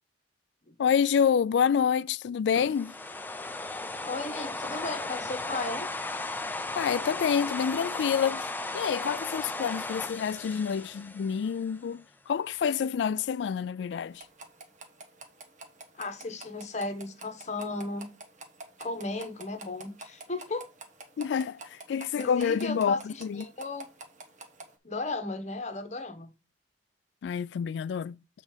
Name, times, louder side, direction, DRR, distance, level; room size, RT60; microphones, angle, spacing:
voice 1, 0.8-2.9 6.8-8.5 8.7-14.2 21.2-23.5 27.2-28.2, left 7 dB, 75° left, 0.3 m, -28 dB
sound 1, 2.5-11.8, left 2 dB, 10° left, 0.5 m, -36 dB
voice 2, 4.0-5.9 16.0-18.1 18.8-20.6 22.2-23.9 24.8-26.3, left 2 dB, 40° left, 1.1 m, -35 dB
sound 2, 14.1-24.7, right 2 dB, 45° right, 1.2 m, -49 dB
7.4 x 4.1 x 4.9 m
head